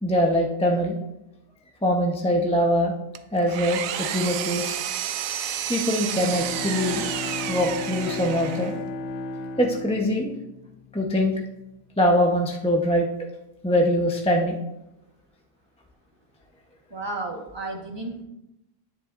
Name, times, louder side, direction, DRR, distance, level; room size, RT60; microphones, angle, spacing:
voice 1, 0.0-1.0 1.8-2.9 3.3-4.8 5.7-7.1 7.5-8.7 9.6-10.3 10.9-11.3 12.0-13.1 13.6-14.6, equal, 5° left, 0 dB, 0.5 m, -23 dB
Engine, 3.1-8.9, right 10 dB, 70° right, 0.9 m, -31 dB
Bowed string instrument, 5.8-11.2, left 3 dB, 80° left, 1.1 m, -34 dB
voice 2, 16.9-18.2, right 2 dB, 15° right, 0 dB, 1.2 m, -33 dB
10.5 x 9.9 x 2.5 m, 0.89 s
omnidirectional pair, 1.7 m